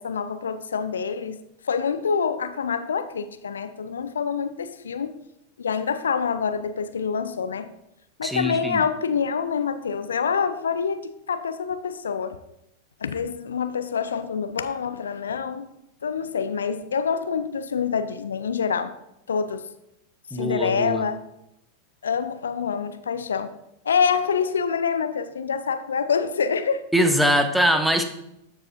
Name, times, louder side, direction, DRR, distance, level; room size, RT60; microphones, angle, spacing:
voice 1, 0.0-1.4 1.7-5.1 5.6-7.7 8.2-12.4 13.0-15.7 16.0-18.9 19.3-19.6 20.3-21.2 22.0-23.5 23.8-26.8, left 6 dB, 70° left, 11 dB, 0.4 m, -26 dB
voice 2, 8.2-8.8 20.3-21.0 26.9-28.0, equal, 5° right, 7 dB, 0.7 m, -22 dB
13.5 x 4.8 x 2.5 m, 0.82 s
figure-of-eight pair, 90°, 0 cm